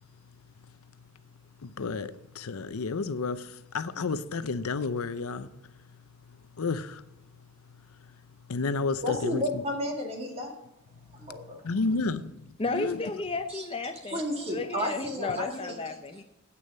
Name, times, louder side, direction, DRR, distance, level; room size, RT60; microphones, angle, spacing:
voice 1, 1.6-5.5 6.6-7.0 8.5-9.4 11.6-12.3 12.7-13.0, left 4 dB, 75° left, 0.6 m, -31 dB
voice 2, 9.0-10.5 11.1-11.6 13.5-13.7 14.1-15.7, left 1 dB, 30° right, 2.2 m, -32 dB
voice 3, 12.6-14.2 14.5-16.2, left 3 dB, 25° left, 0.6 m, -33 dB
9.7 x 8.5 x 5.4 m
head